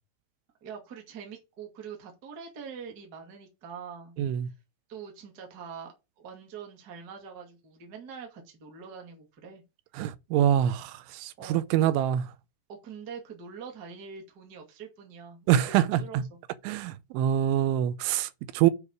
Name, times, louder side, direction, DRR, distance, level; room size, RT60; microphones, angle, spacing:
voice 1, 0.6-4.1 4.4-4.5 4.9-9.6 11.4-11.9 12.7-16.3, right 6 dB, 35° right, 1.5 m, -44 dB
voice 2, 10.0-12.2 15.5-16.2 16.7-18.7, right 11 dB, 85° right, 3.0 m, -25 dB
8.1 x 4.9 x 6.5 m
omnidirectional pair, 5.5 m